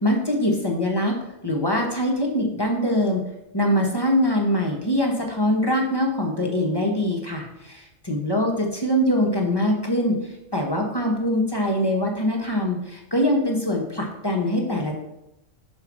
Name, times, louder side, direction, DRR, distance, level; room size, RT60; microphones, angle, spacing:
voice 1, 0.0-1.2 1.4-3.2 3.5-10.2 10.5-14.9, left 1 dB, 20° left, 0 dB, 1.0 m, -23 dB
5.6 x 4.3 x 6.1 m, 0.84 s
omnidirectional pair, 1.3 m